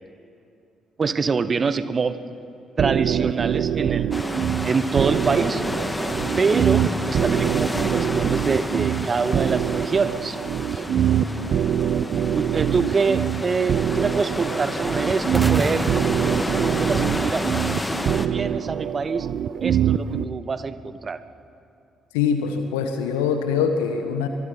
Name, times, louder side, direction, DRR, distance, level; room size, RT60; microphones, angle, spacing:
voice 1, 1.0-2.2 2.8-5.6 6.4-10.4 10.7-10.8 12.3-17.4 17.8-19.3 19.6-21.2, right 5 dB, 40° right, 13 dB, 1.1 m, -25 dB
sound 1, 2.8-20.2, right 9 dB, 55° right, 0.6 m, -24 dB
sound 2, 4.1-18.3, left 1 dB, 15° left, 1.6 m, -30 dB
sound 3, 15.3-17.4, right 1 dB, 10° right, 1.2 m, -31 dB
voice 2, 22.1-24.3, left 6 dB, 75° left, 7 dB, 1.2 m, -23 dB
25.0 x 22.5 x 5.7 m, 2.6 s
figure-of-eight pair, 45°, 0 cm